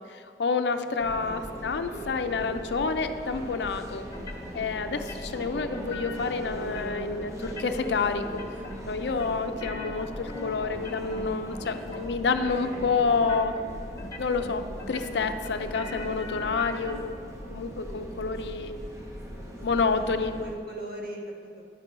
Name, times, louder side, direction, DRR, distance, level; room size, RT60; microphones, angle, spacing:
voice 1, 0.1-4.1 4.5-8.4 8.9-13.6 14.2-17.2 17.5-18.7 19.6-20.3, left 4 dB, 70° left, 8 dB, 0.5 m, -28 dB
voice 2, 0.8-1.4 19.8-21.7, right 1 dB, 55° right, -1 dB, 1.6 m, -41 dB
sound 1, 1.0-20.6, equal, 15° right, 0.9 m, -39 dB
sound 2, 4.1-4.7 4.9-6.3 6.6-7.1 7.4-8.0 8.2-8.8 9.1-11.3 11.5-12.1 12.3-12.8 13.1-13.7 14.0-14.5 14.8-16.9, left 3 dB, 20° left, 1.2 m, -41 dB
10.5 x 4.5 x 6.5 m, 2.3 s
head